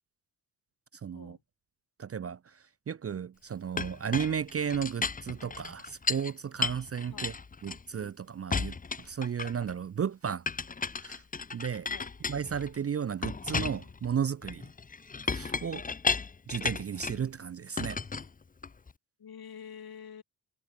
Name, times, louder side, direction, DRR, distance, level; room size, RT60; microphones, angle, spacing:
voice 1, 1.0-1.4 2.0-2.6 2.9-7.3 7.6-10.4 11.0-11.2 11.5-11.9 12.3-14.7 15.2-15.9 16.5-18.0, right 7 dB, 40° right, 0.4 m, -34 dB
Chink clink, 3.8-6.3 6.6-8.1 8.5-9.7 10.5-12.8 13.2-17.3 17.8-18.9, left 4 dB, 20° left, 0.5 m, -34 dB
voice 2, 19.2-20.2, left 7 dB, 65° left, 2.0 m, -47 dB
wide cardioid pair, 175°, 40 cm